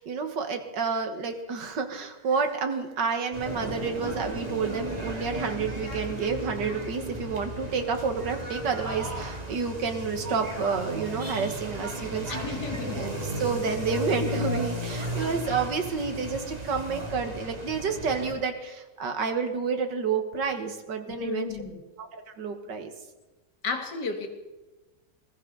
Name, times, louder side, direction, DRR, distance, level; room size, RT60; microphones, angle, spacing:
voice 1, 0.0-12.6 12.9-21.5 22.0-22.9, right 5 dB, 75° right, 6 dB, 2.1 m, -30 dB
sound 1, 3.3-18.3, right 1 dB, 20° right, 2.1 m, -35 dB
voice 2, 12.3-13.0 15.1-15.2 21.2-21.8 23.6-24.3, left 5 dB, 70° left, 5 dB, 2.2 m, -33 dB
20.5 x 14.0 x 4.0 m, 1.1 s
omnidirectional pair, 1.9 m